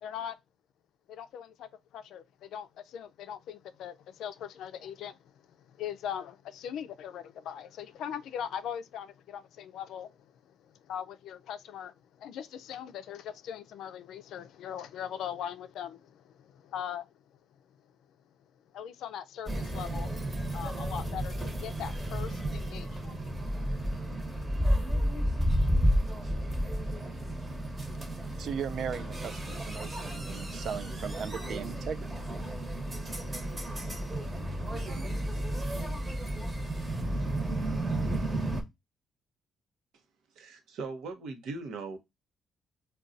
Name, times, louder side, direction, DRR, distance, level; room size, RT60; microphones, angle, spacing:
voice 1, 0.0-0.4 1.1-5.3 5.6-17.1 18.7-20.1 20.5-25.8, left 9 dB, 80° left, 0.3 m, -41 dB
sound 1, 19.5-38.6, equal, 20° right, 1.0 m, -32 dB
voice 2, 28.4-32.2, right 7 dB, 65° right, 0.3 m, -38 dB
voice 3, 40.4-42.0, right 3 dB, 80° right, 0.8 m, -39 dB
3.9 x 2.2 x 2.4 m
cardioid pair, 90°, 0 cm